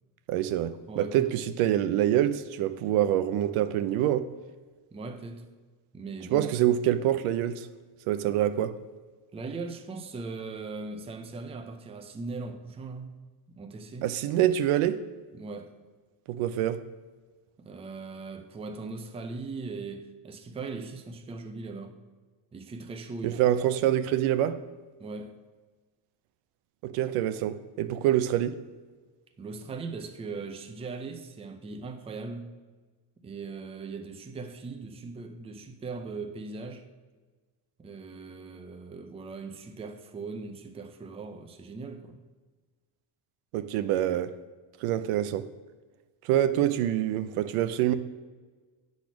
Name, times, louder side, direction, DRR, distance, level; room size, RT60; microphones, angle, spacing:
voice 1, 0.3-4.3 6.3-7.7 8.1-8.7 14.0-15.0 16.3-16.8 23.2-24.6 26.8-28.6 43.5-44.3 44.8-45.5 46.2-47.9, right 12 dB, 85° right, 0.7 m, -26 dB
voice 2, 0.9-1.3 4.9-5.5 5.9-6.5 9.3-14.1 15.3-15.8 17.6-22.0 22.5-23.6 25.0-25.4 29.4-32.5 33.2-36.9 37.8-42.2, right 3 dB, 15° right, 0.4 m, -39 dB
8.4 x 4.2 x 5.9 m
cardioid pair, 130°, 49 cm